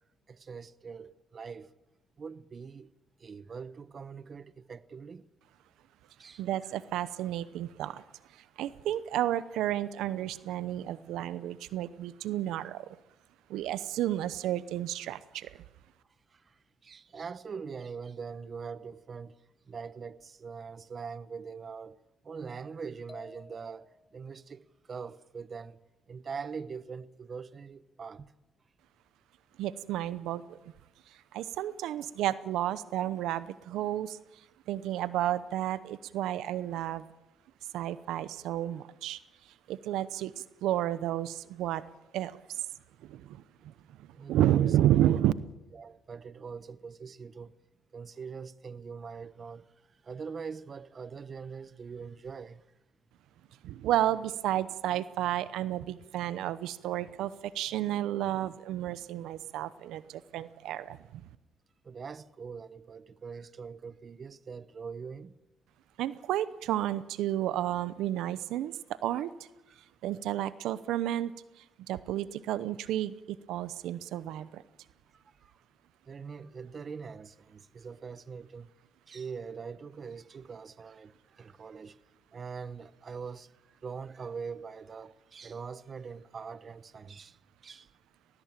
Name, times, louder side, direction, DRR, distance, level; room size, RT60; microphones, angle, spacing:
voice 1, 0.3-1.7 2.2-2.9 3.2-5.3 6.2-6.4 16.3-19.4 19.7-22.0 22.2-25.8 26.1-28.3 44.1-44.8 45.0-45.2 45.7-47.6 47.9-52.6 61.8-65.3 69.1-69.2 69.7-69.8 75.1-75.5 76.1-78.7 79.1-82.0 82.3-83.5 83.8-87.9, right 5 dB, 45° right, 1.0 m, -43 dB
voice 2, 6.4-8.0 8.6-12.9 13.5-15.5 29.6-30.6 31.3-34.2 34.7-37.0 37.7-39.2 39.7-40.3 40.6-41.8 42.1-42.6 43.1-43.4 44.3-45.3 53.6-61.2 66.0-68.7 69.0-69.3 70.0-71.3 71.9-74.6, right 12 dB, 90° right, 0.8 m, -31 dB
sound 1, 23.1-24.3, left 2 dB, 25° left, 1.7 m, -52 dB
20.0 x 19.5 x 9.0 m
cardioid pair, 90°, 0 cm